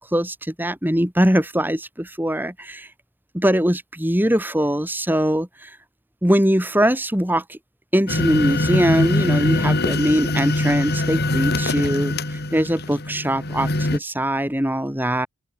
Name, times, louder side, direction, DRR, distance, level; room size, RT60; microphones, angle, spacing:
voice 1, 0.0-2.9 3.3-5.7 6.2-7.6 7.9-12.1 12.5-15.3, equal, 10° right, 3.2 m, -21 dB
sound 1, 8.1-14.0, left 1 dB, 45° left, 2.8 m, -22 dB
open air
head